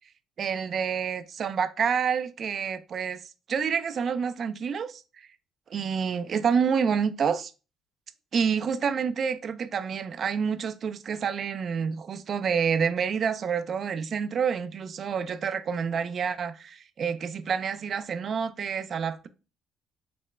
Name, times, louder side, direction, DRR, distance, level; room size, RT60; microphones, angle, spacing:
voice 1, 0.4-3.2 3.5-5.3 5.7-7.5 8.3-19.3, right 6 dB, 50° right, 0.4 m, -28 dB
4.3 x 3.0 x 3.2 m
supercardioid pair, 85°, 0 cm